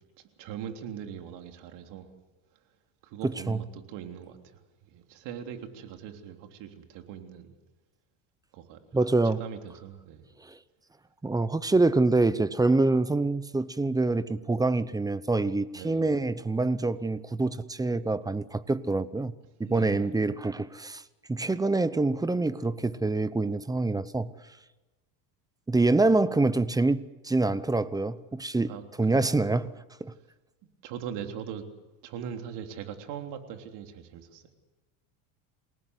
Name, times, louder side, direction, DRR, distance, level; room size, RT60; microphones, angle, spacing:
voice 1, 0.4-2.1 3.0-4.6 4.9-7.5 8.5-8.8 9.2-10.3 15.7-16.1 19.6-20.1 28.7-29.3 30.6-31.7 32.0-34.6, right 8 dB, 60° right, 3.4 m, -41 dB
voice 2, 3.2-3.6 8.9-9.4 10.5-10.6 11.2-19.3 19.6-21.0 21.3-24.3 25.7-28.7 29.0-29.7 30.0-30.1, right 2 dB, 10° right, 0.7 m, -26 dB
28.0 x 18.5 x 8.2 m
supercardioid pair, 120°, 46 cm